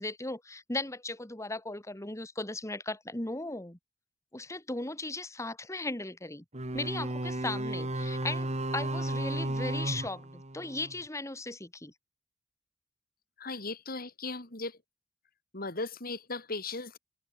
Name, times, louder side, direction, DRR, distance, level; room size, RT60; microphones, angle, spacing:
voice 1, 0.0-3.8 4.3-6.4 6.7-11.9, left 2 dB, 15° left, 2.0 m, -37 dB
sound 1, 6.5-11.0, right 1 dB, 35° right, 2.9 m, -34 dB
voice 2, 13.4-14.8 15.5-17.0, left 3 dB, 50° left, 4.0 m, -37 dB
open air
head